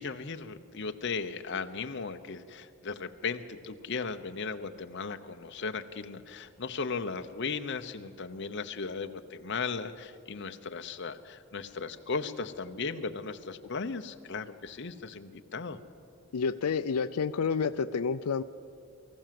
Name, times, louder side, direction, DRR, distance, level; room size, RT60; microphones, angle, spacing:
voice 1, 0.0-15.8, left 4 dB, 50° left, 8 dB, 0.9 m, -36 dB
voice 2, 16.3-18.4, left 5 dB, 85° left, 11 dB, 0.5 m, -29 dB
23.5 x 14.5 x 7.6 m, 2.5 s
head